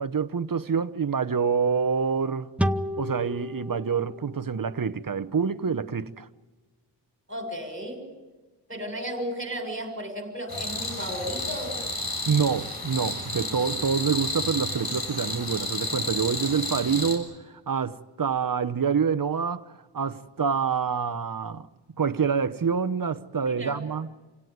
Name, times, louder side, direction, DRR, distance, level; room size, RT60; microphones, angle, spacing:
voice 1, 0.0-2.5 3.0-6.3 12.3-19.6 19.9-21.7 22.0-24.1, right 6 dB, 50° right, 1.0 m, -26 dB
sound 1, 2.6-5.9, equal, 5° right, 0.9 m, -33 dB
voice 2, 7.3-8.0 8.7-11.8 23.4-23.8, equal, 25° right, 6.8 m, -34 dB
sound 2, 10.5-17.2, left 2 dB, 55° left, 6.8 m, -31 dB
28.5 x 17.5 x 9.5 m
wide cardioid pair, 75°, 43 cm